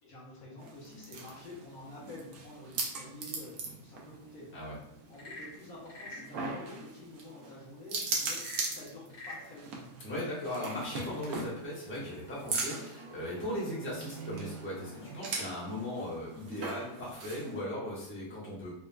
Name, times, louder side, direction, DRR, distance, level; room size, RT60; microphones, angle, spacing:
voice 1, 0.0-4.5 5.1-9.9, left 2 dB, 70° left, -6 dB, 1.4 m, -49 dB
sound 1, 0.6-17.6, right 3 dB, 85° right, 1.2 m, -40 dB
Frog / Percussion / Wood, 5.0-6.3 8.3-9.5, left 2 dB, 45° left, 0.9 m, -45 dB
voice 2, 10.0-18.7, left 1 dB, 10° left, -7 dB, 0.9 m, -38 dB
4.1 x 2.4 x 2.2 m, 0.78 s
omnidirectional pair, 1.6 m